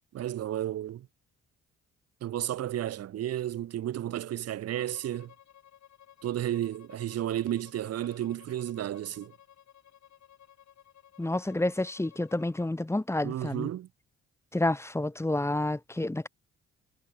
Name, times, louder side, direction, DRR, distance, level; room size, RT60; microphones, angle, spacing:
voice 1, 0.1-1.1 2.2-5.3 6.2-9.3 13.2-13.9, right 12 dB, 55° right, 0.7 m, -32 dB
Bowed string instrument, 4.7-12.7, left 10 dB, 65° left, 6.8 m, -56 dB
voice 2, 11.2-13.7 14.5-16.3, left 2 dB, 10° left, 1.5 m, -29 dB
cardioid pair, 90°, 30 cm